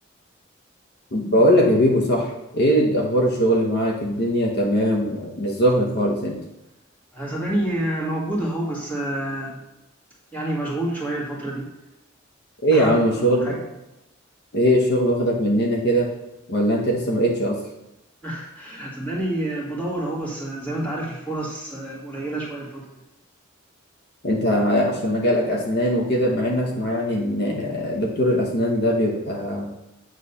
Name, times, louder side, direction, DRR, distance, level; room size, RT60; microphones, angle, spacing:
voice 1, 1.1-6.4 12.6-13.5 14.5-16.1 16.5-17.6 24.2-29.7, equal, 55° left, -1 dB, 1.0 m, -21 dB
voice 2, 7.1-9.6 10.3-11.7 12.7-13.5 18.2-23.0, right 1 dB, 10° left, -5 dB, 1.9 m, -28 dB
8.4 x 3.3 x 5.5 m, 0.92 s
head